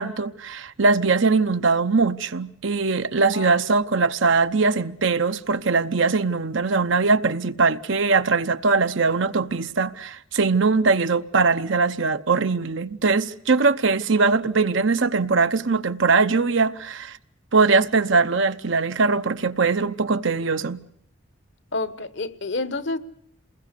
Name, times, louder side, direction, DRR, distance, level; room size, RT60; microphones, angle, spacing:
voice 1, 0.0-17.2 17.5-20.8, right 4 dB, 65° right, 0.9 m, -21 dB
voice 2, 21.7-23.0, left 3 dB, 60° left, 1.1 m, -28 dB
28.0 x 21.0 x 6.7 m
head